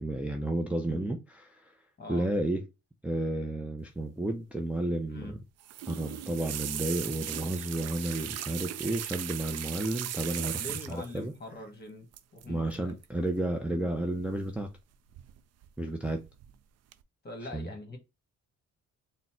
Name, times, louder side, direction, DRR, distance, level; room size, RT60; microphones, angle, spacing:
voice 1, 0.0-1.7 2.1-2.7 3.0-5.4 5.9-10.5 10.9-11.3 12.5-14.7 15.8-16.2 17.5-17.7, right 1 dB, 5° right, 0.5 m, -32 dB
sound 1, 5.6-11.2 12.1-12.4 12.7-13.0 14.2-14.8 15.1-15.7 16.1-16.5 16.9-17.0, right 11 dB, 60° right, 0.4 m, -38 dB
voice 2, 10.4-12.1 12.3-12.9 17.2-18.0, left 1 dB, 35° left, 1.4 m, -43 dB
3.9 x 2.1 x 4.3 m
cardioid pair, 90°, 30 cm